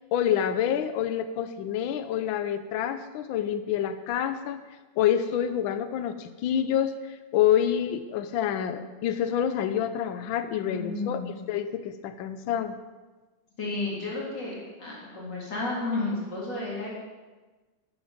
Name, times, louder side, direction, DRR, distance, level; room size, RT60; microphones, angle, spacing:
voice 1, 0.1-4.6 5.0-11.2 11.5-12.8, left 9 dB, 85° left, 10 dB, 1.5 m, -27 dB
voice 2, 10.7-11.4 13.6-16.9, left 2 dB, 60° left, -5 dB, 3.9 m, -32 dB
12.5 x 9.1 x 5.0 m, 1.3 s
omnidirectional pair, 2.1 m